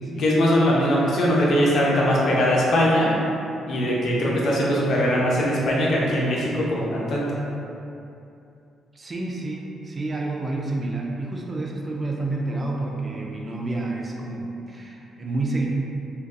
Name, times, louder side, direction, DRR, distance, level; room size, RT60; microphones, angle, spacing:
voice 1, 0.0-3.1 3.7-7.3, equal, 60° left, -4 dB, 0.5 m, -21 dB
voice 2, 8.9-15.7, right 2 dB, 30° right, -1 dB, 0.3 m, -29 dB
2.6 x 2.2 x 2.3 m, 2.7 s
cardioid pair, 90°, 0 cm